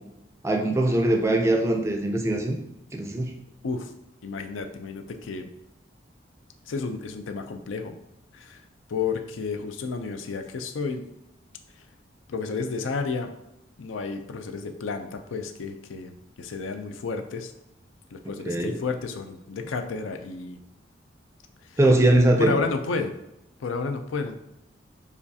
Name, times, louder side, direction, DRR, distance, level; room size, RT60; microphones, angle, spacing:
voice 1, 0.4-2.6 2.9-3.3 18.4-18.7 21.8-22.6, right 1 dB, 15° right, 3 dB, 0.4 m, -21 dB
voice 2, 4.2-5.5 6.6-8.0 8.3-8.6 8.9-11.0 12.3-13.3 13.8-17.5 18.1-20.6 21.7-21.8 22.4-23.1 23.6-24.4, left 4 dB, 90° left, 6 dB, 0.5 m, -31 dB
6.8 x 2.4 x 2.7 m, 0.86 s
head